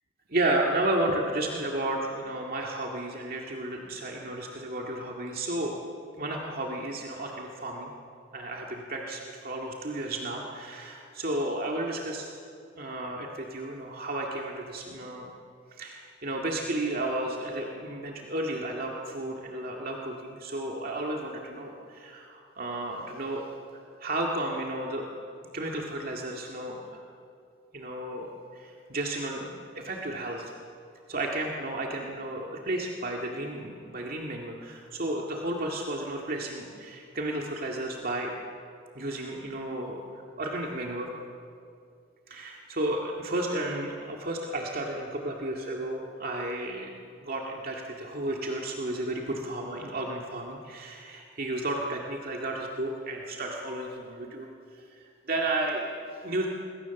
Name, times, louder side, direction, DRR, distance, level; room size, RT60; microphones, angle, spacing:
voice 1, 0.3-5.8 6.2-7.9 8.3-12.3 12.8-15.3 15.8-23.4 23.7-25.1 25.5-27.0 27.7-28.3 28.5-30.5 31.1-38.3 39.0-40.0 40.4-41.1 42.3-54.5 54.7-54.8 55.3-56.5, right 1 dB, 45° right, 0 dB, 2.1 m, -33 dB
27.0 x 22.0 x 7.1 m, 2.4 s
head